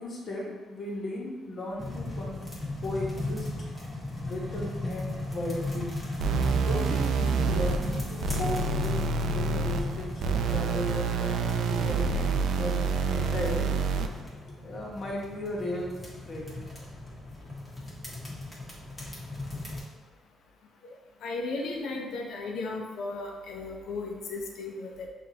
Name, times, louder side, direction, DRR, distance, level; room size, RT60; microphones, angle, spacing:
voice 1, 0.0-2.5 2.8-3.5 4.2-5.9 6.6-13.8 14.6-16.8, left 1 dB, 50° left, -3 dB, 1.2 m, -36 dB
sound 1, 1.8-19.8, left 2 dB, 20° left, 1.5 m, -37 dB
sound 2, 6.2-14.2, right 5 dB, 80° right, 0.3 m, -28 dB
voice 2, 21.2-25.1, left 3 dB, 75° left, 1 dB, 0.7 m, -35 dB
5.7 x 2.6 x 2.8 m, 1.3 s
cardioid pair, 90°, 0 cm